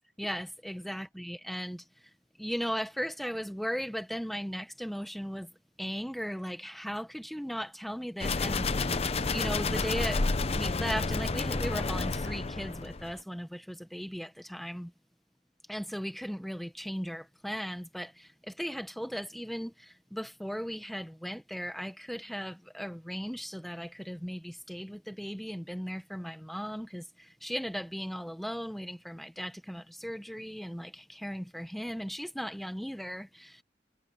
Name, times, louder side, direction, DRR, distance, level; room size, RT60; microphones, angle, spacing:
voice 1, 0.2-1.8 2.4-5.5 5.8-9.0 9.3-14.9 15.7-33.6, equal, ahead, 1.1 m, -37 dB
sound 1, 8.2-13.2, left 3 dB, 35° left, 0.7 m, -30 dB
head